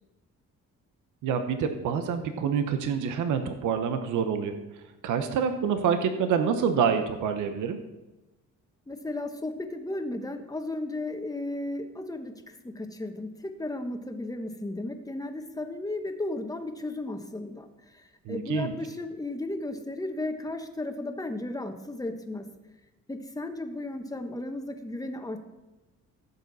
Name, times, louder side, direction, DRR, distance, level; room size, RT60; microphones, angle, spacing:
voice 1, 1.2-4.5 5.0-7.8 18.3-18.7, right 7 dB, 80° right, 7 dB, 1.0 m, -27 dB
voice 2, 8.9-22.5 23.1-25.4, left 2 dB, 10° left, 6 dB, 1.2 m, -35 dB
15.0 x 6.8 x 4.1 m, 1.1 s
cardioid pair, 90°, 30 cm